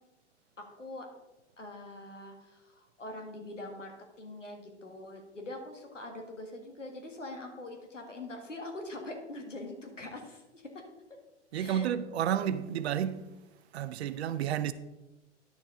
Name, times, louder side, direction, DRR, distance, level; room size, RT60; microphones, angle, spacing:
voice 1, 0.6-1.1 1.6-10.7 11.5-11.9, left 2 dB, 90° left, 1.8 m, -43 dB
voice 2, 11.5-13.2 13.7-14.7, right 9 dB, 60° right, 0.7 m, -31 dB
10.5 x 6.9 x 3.8 m
figure-of-eight pair, 105°, 36 cm